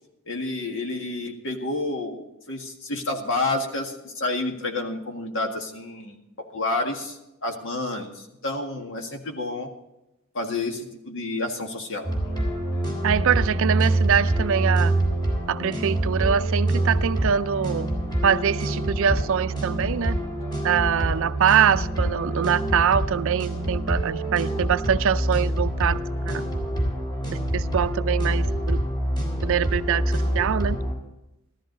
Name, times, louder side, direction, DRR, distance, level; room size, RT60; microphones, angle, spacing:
voice 1, 0.3-6.2 6.5-9.7 10.3-12.1, left 2 dB, 65° left, 3 dB, 1.8 m, -29 dB
sound 1, 12.0-30.9, right 1 dB, 20° left, 3.5 m, -26 dB
voice 2, 13.0-14.9 15.5-17.9 18.2-20.2 20.6-26.4 27.5-28.8 29.4-30.0 30.3-30.8, right 8 dB, 65° right, 14 dB, 0.4 m, -23 dB
14.0 x 13.5 x 4.0 m, 0.92 s
head